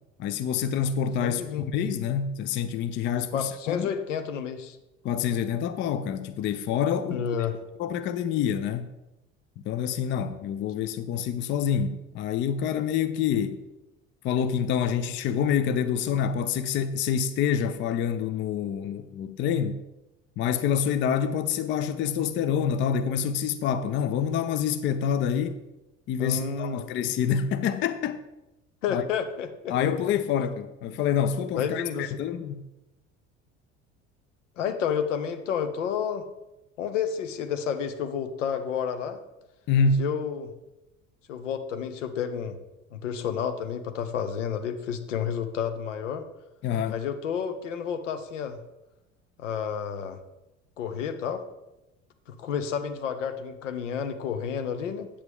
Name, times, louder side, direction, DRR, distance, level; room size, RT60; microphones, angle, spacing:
voice 1, 0.2-1.4 1.7-3.9 5.0-7.3 7.8-8.9 9.7-13.6 14.2-19.8 20.4-25.6 26.1-28.2 28.9-29.0 29.7-32.6 39.7-40.0 46.6-47.0, left 7 dB, 30° left, 0.5 m, -27 dB
voice 2, 1.2-1.7 3.3-4.8 7.1-7.6 26.2-26.8 28.8-29.7 31.5-32.2 34.6-36.3 36.8-39.2 40.0-40.5 41.3-42.6 42.9-46.2 46.9-48.6 49.4-50.2 50.8-51.4 52.3-55.1, left 7 dB, 70° left, 0.8 m, -30 dB
8.4 x 8.1 x 3.6 m
figure-of-eight pair, 65°, 38 cm